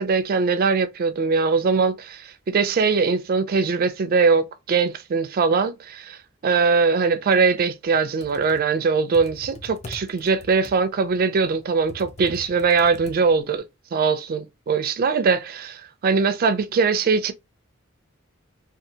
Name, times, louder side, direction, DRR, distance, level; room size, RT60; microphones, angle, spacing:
voice 1, 0.0-2.2 2.5-6.2 6.4-13.6 13.9-17.3, right 5 dB, 45° right, 0.4 m, -21 dB
Computer keyboard, 8.0-13.6, left 2 dB, 35° left, 0.5 m, -43 dB
2.7 x 2.4 x 2.7 m
head